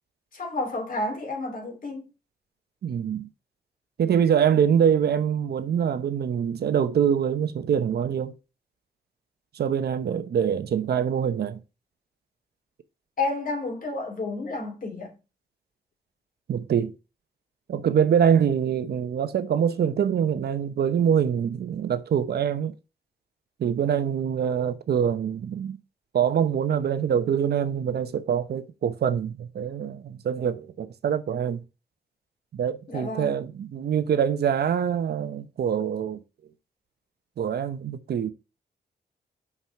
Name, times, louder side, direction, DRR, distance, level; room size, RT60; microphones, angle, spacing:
voice 1, 0.3-2.1 13.2-15.1 32.9-33.4, left 2 dB, 55° left, 2.7 m, -31 dB
voice 2, 2.8-3.3 4.0-8.3 9.5-11.6 16.5-16.9 17.7-22.7 23.6-25.8 26.1-31.6 32.5-36.2 37.4-38.3, right 8 dB, 75° right, 0.9 m, -24 dB
5.8 x 4.7 x 5.7 m
cardioid pair, 75°, 17 cm